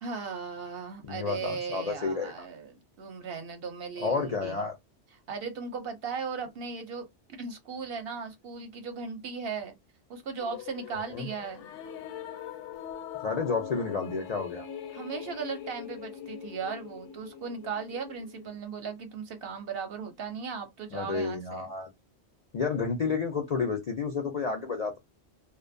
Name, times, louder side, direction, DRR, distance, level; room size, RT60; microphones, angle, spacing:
voice 1, 0.0-4.6 5.3-7.1 7.4-9.8 10.1-11.7 14.9-21.7, right 5 dB, 60° right, 0.8 m, -37 dB
voice 2, 1.0-2.3 4.0-4.7 11.1-11.3 13.2-14.6 20.9-21.9 22.5-25.0, left 4 dB, 55° left, 0.4 m, -30 dB
sound 1, 10.4-18.6, left 9 dB, 80° left, 0.9 m, -42 dB
2.5 x 2.2 x 2.5 m
omnidirectional pair, 1.2 m